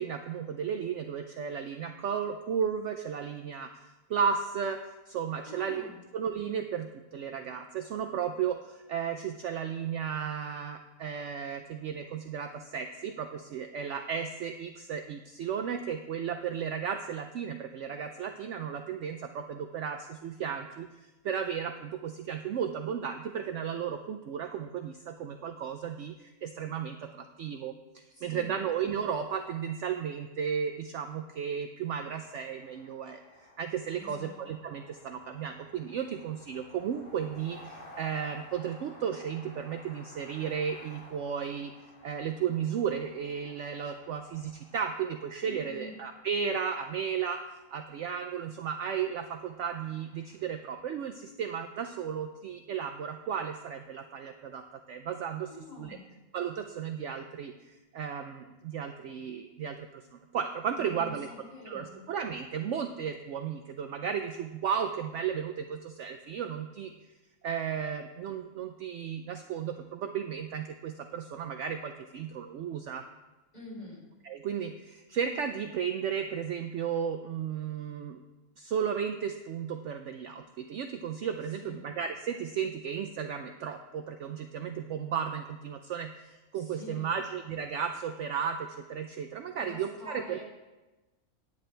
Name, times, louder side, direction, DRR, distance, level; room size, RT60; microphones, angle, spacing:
voice 1, 0.0-5.9 6.1-27.7 28.2-41.7 42.0-47.4 47.7-55.5 55.8-56.0 56.3-61.3 61.7-66.9 67.4-73.0 74.2-78.2 78.6-90.4, right 7 dB, 65° right, 7 dB, 0.8 m, -34 dB
voice 2, 5.4-6.0 28.1-28.6 33.9-34.4 45.4-45.9 55.5-56.1 60.8-62.1 73.5-74.0 81.5-81.9 86.5-87.2 89.6-90.4, left 2 dB, 30° left, -6 dB, 4.0 m, -46 dB
sound 1, 31.9-50.8, left 1 dB, 80° left, 2.7 m, -55 dB
10.0 x 9.5 x 3.3 m, 1.1 s
omnidirectional pair, 1.5 m